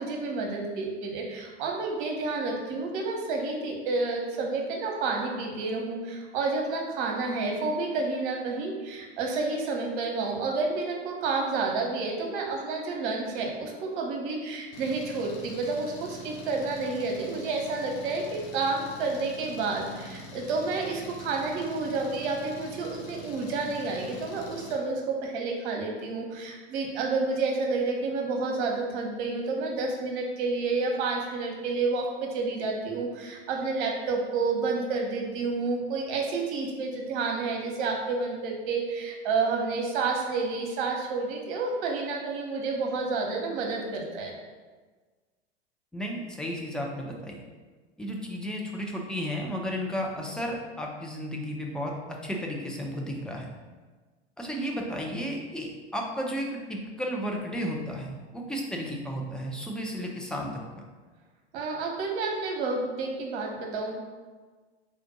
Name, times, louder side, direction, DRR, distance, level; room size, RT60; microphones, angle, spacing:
voice 1, 0.0-44.4 61.5-64.0, right 3 dB, 50° right, 0 dB, 0.9 m, -30 dB
Engine, 14.7-24.7, left 1 dB, 55° left, 0.8 m, -44 dB
voice 2, 45.9-47.4 48.0-53.5 54.4-60.5 60.8-60.9, equal, ahead, -1 dB, 0.4 m, -33 dB
3.6 x 2.5 x 3.9 m, 1.4 s
figure-of-eight pair, 85°, 33 cm